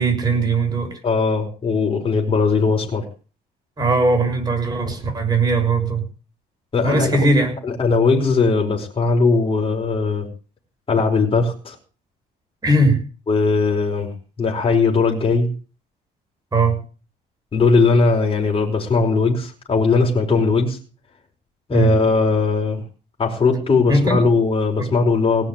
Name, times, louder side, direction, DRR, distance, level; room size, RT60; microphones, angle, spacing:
voice 1, 0.0-0.9 3.8-6.0 6.8-7.5 12.6-13.0 16.5-16.7 21.7-21.9 23.9-24.2 24.8-24.9, right 2 dB, 25° right, 3 dB, 6.6 m, -19 dB
voice 2, 1.0-3.1 6.7-7.3 7.6-10.3 10.9-11.7 13.3-14.1 14.4-15.5 17.5-20.8 21.7-22.8 23.2-25.5, left 4 dB, 30° left, -1 dB, 4.9 m, -19 dB
18.5 x 6.5 x 9.0 m, 0.37 s
cardioid pair, 110°, 17 cm